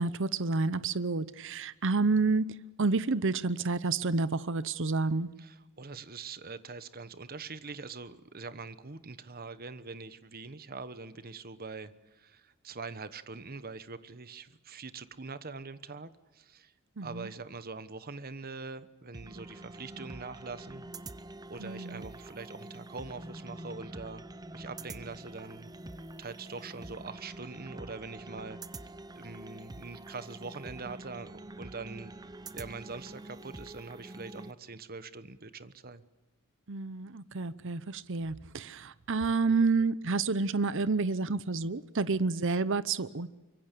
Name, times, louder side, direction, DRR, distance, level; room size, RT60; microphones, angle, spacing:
voice 1, 0.0-2.5 2.8-5.3 17.0-17.3 21.6-22.1 36.7-43.3, right 3 dB, 60° right, 0.8 m, -29 dB
voice 2, 5.4-16.7 17.0-20.9 21.5-24.2 24.5-25.7 26.2-28.6 29.1-32.1 32.5-36.0, right 4 dB, 40° right, 1.1 m, -43 dB
sound 1, 19.1-34.5, right 2 dB, 15° right, 0.7 m, -46 dB
24.5 x 23.5 x 6.8 m
head